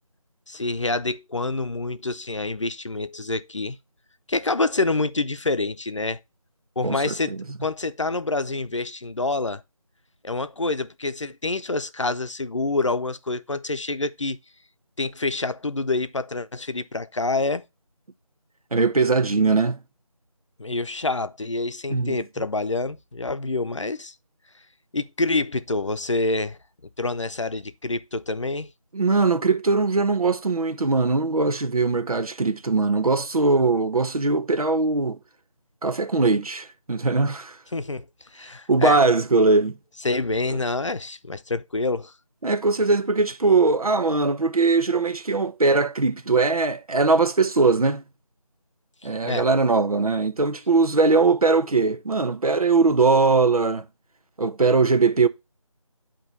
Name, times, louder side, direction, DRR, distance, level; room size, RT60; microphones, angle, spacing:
voice 1, 0.5-3.8 4.3-6.2 6.8-7.3 7.6-9.6 10.2-14.4 15.0-17.6 20.6-24.1 24.9-26.6 27.0-28.7 37.7-38.0 38.3-39.0 40.0-42.1 49.3-49.5, left 3 dB, 55° left, 0.6 m, -27 dB
voice 2, 6.8-7.4 18.7-19.8 21.9-22.2 28.9-35.2 35.8-37.6 38.7-39.8 42.4-48.0 49.0-53.9 54.4-55.3, right 3 dB, 80° right, 0.9 m, -21 dB
8.5 x 3.0 x 5.3 m
figure-of-eight pair, 180°, 18 cm